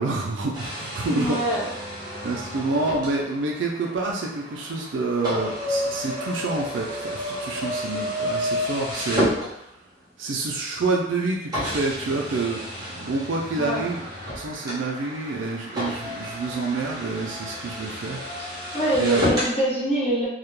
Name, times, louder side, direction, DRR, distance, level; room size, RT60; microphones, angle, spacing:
voice 1, 0.0-1.4 2.2-9.7 10.2-14.0 14.4-18.6 19.0-19.2, right 3 dB, 90° right, -1 dB, 0.4 m, -28 dB
sound 1, 0.5-10.0 10.7-10.8 11.5-19.6, equal, 20° right, 0.9 m, -31 dB
voice 2, 1.1-1.7 13.6-13.8 18.7-20.3, right 1 dB, 35° left, -7 dB, 0.9 m, -24 dB
2.3 x 2.1 x 3.1 m, 0.81 s
head